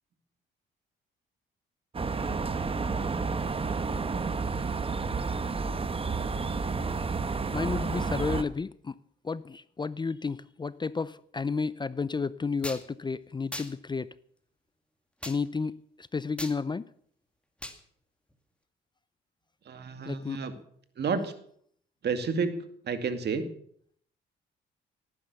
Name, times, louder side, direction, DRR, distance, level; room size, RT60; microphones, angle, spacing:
sound 1, 1.9-8.4, right 4 dB, 30° right, 1.1 m, -30 dB
voice 1, 7.5-9.0 9.2-14.1 15.2-16.9 20.0-20.4, left 4 dB, 20° left, 0.5 m, -32 dB
sound 2, 12.6-12.8 13.5-13.7 15.2-15.4 16.4-16.6 17.6-17.8, left 1 dB, 5° left, 2.2 m, -38 dB
voice 2, 19.7-20.5 21.0-21.3 22.0-22.5 22.8-23.4, right 5 dB, 55° right, 2.3 m, -30 dB
18.0 x 9.7 x 6.8 m
cardioid pair, 90°, 20 cm